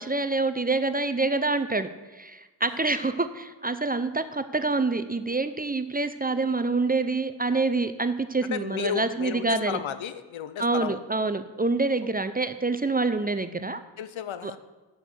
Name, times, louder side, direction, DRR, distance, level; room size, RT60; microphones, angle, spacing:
voice 1, 0.0-1.9 2.1-9.8 10.6-13.8 14.4-14.6, right 3 dB, 20° right, 11 dB, 0.5 m, -26 dB
voice 2, 8.5-11.0 14.0-14.6, left 8 dB, 75° left, 13 dB, 0.7 m, -33 dB
6.7 x 6.4 x 7.5 m, 1.2 s
cardioid pair, 45°, 47 cm